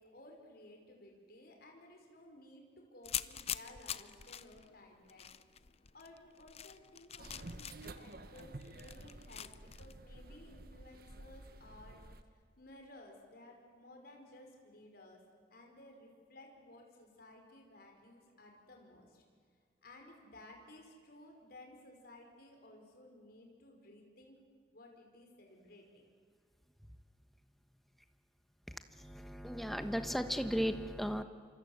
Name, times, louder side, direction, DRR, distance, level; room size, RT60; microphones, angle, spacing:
voice 1, 0.0-5.3 5.9-9.5 9.8-12.0 12.6-15.2 15.5-19.2 19.8-24.4 24.7-26.0, left 1 dB, 50° left, 2 dB, 5.3 m, -57 dB
sound 1, 3.0-9.9, left 10 dB, 35° left, 0.6 m, -45 dB
sound 2, 7.2-12.2, right 2 dB, 50° right, 1.3 m, -51 dB
voice 2, 28.7-31.2, equal, ahead, 8 dB, 1.2 m, -36 dB
27.0 x 26.5 x 8.1 m, 2.1 s
head